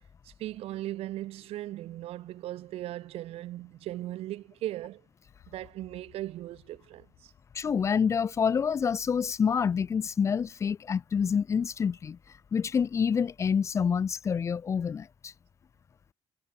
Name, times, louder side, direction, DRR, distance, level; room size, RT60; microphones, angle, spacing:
voice 1, 0.2-5.0 5.5-7.3, right 15 dB, 90° right, 1.2 m, -38 dB
sound 1, 5.2-9.1, left 14 dB, 80° left, 4.2 m, -62 dB
voice 2, 7.5-12.2 12.5-15.3, left 6 dB, 30° left, 0.5 m, -27 dB
cardioid pair, 165°, 10 cm